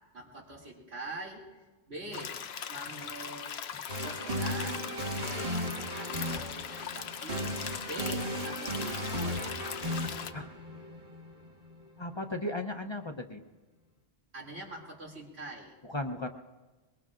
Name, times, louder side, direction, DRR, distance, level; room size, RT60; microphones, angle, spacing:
voice 1, 0.1-1.4 1.9-2.4 2.7-3.6 4.0-4.8 5.2-7.6 7.8-9.5 14.3-15.8, right 2 dB, 90° right, -3 dB, 2.9 m, -44 dB
sound 1, 2.1-10.3, left 8 dB, 80° left, 0.9 m, -40 dB
sound 2, 3.9-11.8, equal, 65° right, 2.1 m, -36 dB
voice 2, 12.0-13.4 15.8-16.3, left 2 dB, 30° left, 5 dB, 0.7 m, -36 dB
23.5 x 21.5 x 2.5 m, 1.2 s
omnidirectional pair, 1.1 m